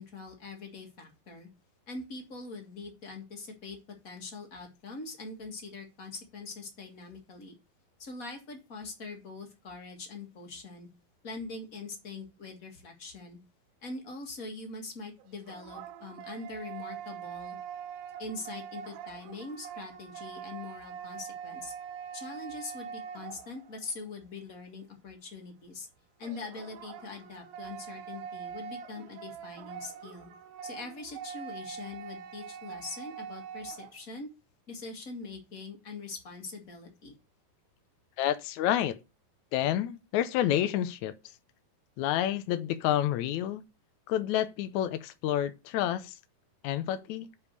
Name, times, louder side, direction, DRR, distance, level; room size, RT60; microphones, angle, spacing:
voice 1, 0.0-1.5 1.9-7.6 8.0-10.9 11.2-13.4 13.8-17.6 18.2-21.7 22.1-25.9 26.2-30.3 30.6-34.3 34.7-37.1, left 3 dB, 30° left, 1.6 m, -43 dB
sound 1, 15.2-23.9 26.2-34.0, right 8 dB, 80° right, 2.5 m, -43 dB
voice 2, 38.2-39.0 39.5-41.1 42.0-43.6 44.1-46.1 46.6-47.3, left 12 dB, 90° left, 1.6 m, -29 dB
7.2 x 5.5 x 6.7 m
omnidirectional pair, 4.2 m